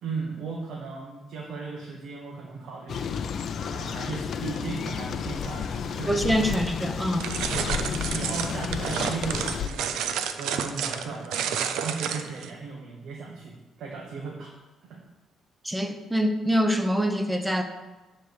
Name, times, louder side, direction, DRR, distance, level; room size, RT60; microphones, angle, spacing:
voice 1, 0.0-3.4 3.7-6.7 7.3-14.5 14.9-15.0, right 4 dB, 70° right, -1 dB, 1.2 m, -37 dB
sound 1, 2.9-9.7, left 7 dB, 60° left, 0.5 m, -31 dB
voice 2, 6.1-7.3 15.6-17.6, equal, 5° right, 6 dB, 0.8 m, -25 dB
sound 2, 7.2-12.5, right 8 dB, 85° right, 0.5 m, -30 dB
10.0 x 3.4 x 6.5 m, 1.1 s
cardioid pair, 90°, 0 cm